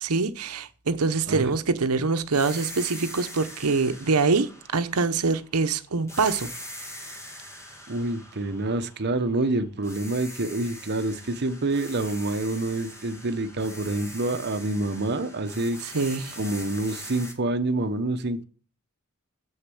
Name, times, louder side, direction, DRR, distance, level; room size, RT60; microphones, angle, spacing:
voice 1, 0.0-6.5 15.8-16.4, right 4 dB, 85° right, 0.8 m, -24 dB
sound 1, 2.3-5.6 6.1-9.4 9.8-17.3, equal, 15° left, 1.8 m, -42 dB
voice 2, 7.9-15.8 16.4-18.4, right 2 dB, 50° right, 0.9 m, -27 dB
7.3 x 6.7 x 7.7 m
head